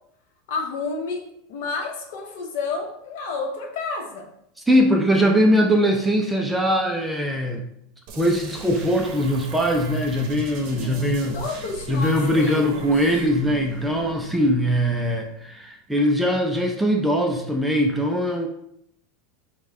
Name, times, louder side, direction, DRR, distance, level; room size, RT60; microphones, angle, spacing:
voice 1, 0.5-1.2 1.5-4.3 10.7-13.3, left 4 dB, 65° left, 3 dB, 0.8 m, -31 dB
voice 2, 4.7-7.6 8.2-11.4 11.9-18.5, equal, 5° right, 2 dB, 0.3 m, -21 dB
sound 1, 8.1-15.6, right 4 dB, 45° right, 0.7 m, -40 dB
5.2 x 2.2 x 3.5 m, 0.74 s
supercardioid pair, 165°, 0 cm